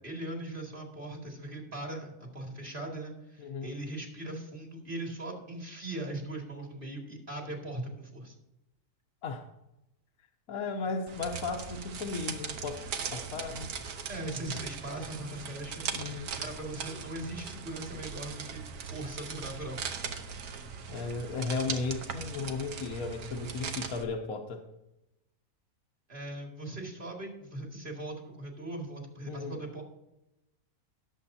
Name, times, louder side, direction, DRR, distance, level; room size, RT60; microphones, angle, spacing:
voice 1, 0.0-8.3 14.1-19.8 26.1-29.8, right 1 dB, 35° right, 0 dB, 2.5 m, -40 dB
voice 2, 3.4-3.7 9.2-9.4 10.5-12.8 13.1-13.7 15.9-16.3 20.9-24.6 29.3-29.6, left 4 dB, 70° left, 2 dB, 1.3 m, -35 dB
sound 1, 11.1-24.0, right 6 dB, 85° right, 1.5 m, -39 dB
17.5 x 7.8 x 2.8 m, 0.90 s
omnidirectional pair, 1.6 m